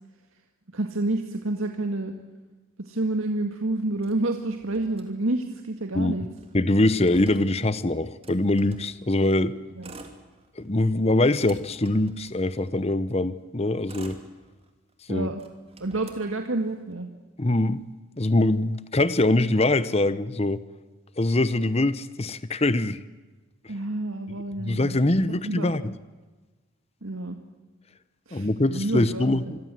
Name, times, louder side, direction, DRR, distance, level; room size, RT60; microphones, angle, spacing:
voice 1, 0.7-2.1 2.8-6.3 9.7-9.9 15.1-15.4 15.8-17.1 23.7-25.0 25.3-25.7 27.0-27.4 28.3-29.5, right 2 dB, 80° right, 5 dB, 1.9 m, -29 dB
Motor vehicle (road), 4.0-5.6 5.9-6.0 6.2-9.0 9.7-10.7 11.1-12.9 13.5-14.9 15.3-16.9, right 2 dB, 30° right, 3.1 m, -48 dB
voice 2, 6.5-9.6 10.6-14.2 15.1-15.3 17.4-17.8 18.2-20.6 21.2-23.0 24.6-25.9 28.3-29.6, left 2 dB, 30° left, 15 dB, 0.9 m, -23 dB
27.0 x 22.5 x 7.7 m, 1.2 s
head